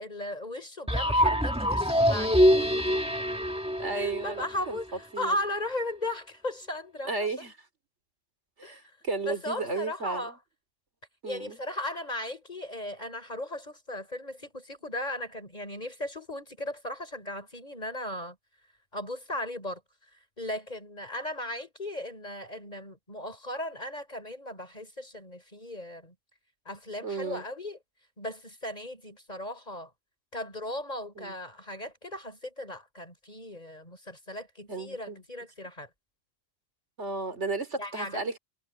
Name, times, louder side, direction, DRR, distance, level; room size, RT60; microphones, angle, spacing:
voice 1, 0.0-2.9 3.9-7.3 8.6-8.8 9.2-10.4 11.3-18.4 18.9-19.8 20.4-26.1 26.7-27.8 28.2-29.9 30.3-35.9 37.8-38.4, left 1 dB, 35° left, 5.5 m, -37 dB
sound 1, 0.9-4.8, equal, 5° right, 2.0 m, -24 dB
voice 2, 3.8-4.8 5.1-5.4 7.0-7.6 8.6-10.3 11.2-11.6 27.0-27.4 31.2-31.3 34.7-35.2 37.0-38.4, right 3 dB, 85° right, 3.1 m, -34 dB
omnidirectional pair, 1.2 m